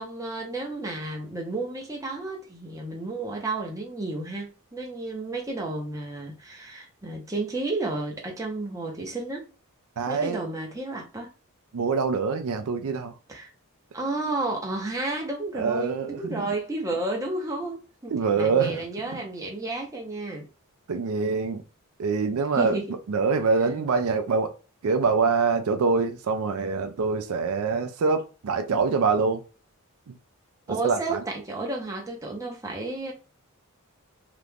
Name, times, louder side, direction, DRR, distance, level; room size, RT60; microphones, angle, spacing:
voice 1, 0.0-9.5 10.1-11.3 13.3-13.5 13.9-20.5 22.6-23.0 30.7-33.1, right 2 dB, 15° right, 0.8 m, -32 dB
voice 2, 10.0-10.4 11.7-13.1 15.5-16.5 18.1-18.9 19.1-19.2 20.9-21.6 22.0-22.8 23.1-24.6 24.8-29.4 30.1-30.2 30.7-31.2, right 4 dB, 75° right, 0.4 m, -25 dB
2.9 x 2.5 x 3.4 m
head